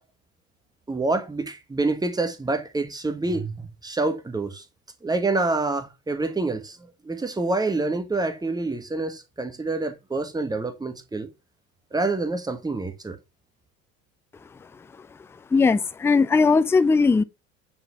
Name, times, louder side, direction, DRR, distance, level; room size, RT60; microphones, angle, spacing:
voice 1, 0.9-4.6 5.0-6.8 7.0-11.3 11.9-13.2, right 3 dB, 10° right, 1.6 m, -27 dB
voice 2, 15.5-17.2, left 4 dB, 5° left, 0.4 m, -19 dB
9.5 x 4.2 x 5.9 m
figure-of-eight pair, 65°, 42 cm